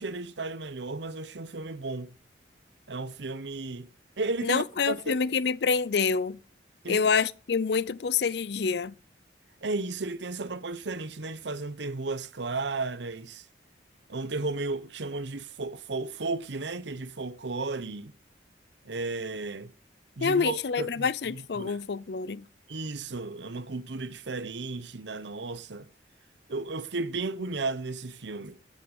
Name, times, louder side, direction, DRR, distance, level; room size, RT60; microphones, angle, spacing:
voice 1, 0.0-2.1 2.9-3.9 4.2-5.2 6.8-7.1 9.6-13.5 14.1-18.1 18.8-19.7 20.2-21.8 22.7-25.9 26.5-28.6, right 3 dB, 75° right, 0.9 m, -34 dB
voice 2, 4.4-6.4 6.9-8.9 20.2-22.4, left 5 dB, 65° left, 0.5 m, -27 dB
14.0 x 7.5 x 5.4 m
head